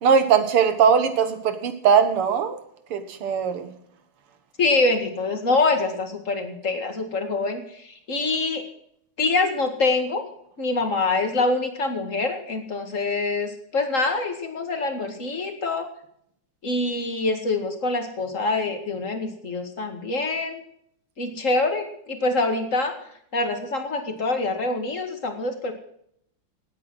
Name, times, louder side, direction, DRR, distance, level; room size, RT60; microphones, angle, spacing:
voice 1, 0.0-2.6 2.9-3.7, right 7 dB, 85° right, 10 dB, 2.4 m, -20 dB
voice 2, 4.6-8.6 9.2-10.2 10.6-15.9 16.6-20.6 21.2-23.0 23.3-25.7, left 3 dB, 35° left, 5 dB, 2.2 m, -25 dB
18.5 x 8.8 x 6.3 m, 0.70 s
omnidirectional pair, 2.4 m